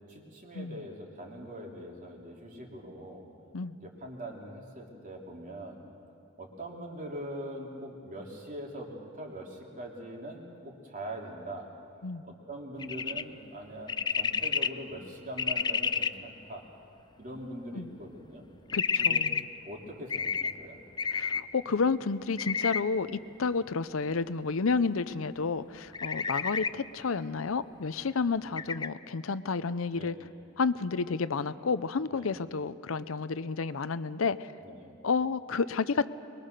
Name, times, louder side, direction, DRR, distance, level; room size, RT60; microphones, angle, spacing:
voice 1, 0.1-3.2 3.8-5.8 6.4-11.7 12.2-16.6 17.2-18.5 19.0-19.3 19.6-20.8 29.9-30.2 32.1-32.3 34.6-34.9, right 1 dB, 40° right, 0 dB, 3.1 m, -42 dB
sound 1, 12.8-13.2 13.9-14.7 15.4-16.1 18.7-19.4 20.1-20.5 21.0-21.4 22.4-22.8 25.9-26.7 28.6-28.9, left 6 dB, 20° left, 0.4 m, -29 dB
voice 2, 18.7-19.4 21.1-30.1 30.6-34.5 35.0-36.1, left 4 dB, 90° left, 14 dB, 0.6 m, -30 dB
23.0 x 22.0 x 6.7 m, 2.5 s
head